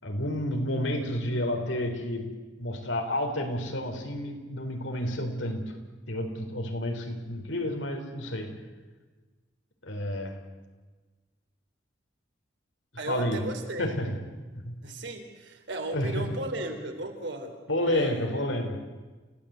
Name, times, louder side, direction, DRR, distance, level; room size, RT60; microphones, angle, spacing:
voice 1, 0.0-5.8 6.1-8.6 9.8-10.4 13.1-13.5 13.8-14.2 14.5-14.8 15.9-16.3 17.7-18.8, left 1 dB, 85° left, 4 dB, 3.8 m, -30 dB
voice 2, 13.0-13.9 14.8-18.5, right 1 dB, 70° right, 4 dB, 3.9 m, -36 dB
29.5 x 16.5 x 8.1 m, 1.3 s
head